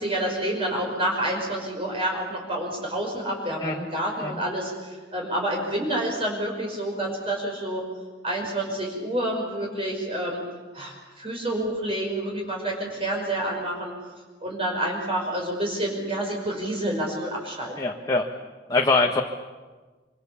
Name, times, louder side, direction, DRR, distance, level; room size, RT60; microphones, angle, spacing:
voice 1, 0.0-7.8 8.2-10.4 10.7-13.9 14.4-17.8, right 1 dB, 30° right, -1 dB, 5.4 m, -28 dB
voice 2, 17.8-18.2 18.7-19.2, left 3 dB, 20° left, 1 dB, 1.3 m, -23 dB
26.0 x 25.5 x 7.3 m, 1.3 s
head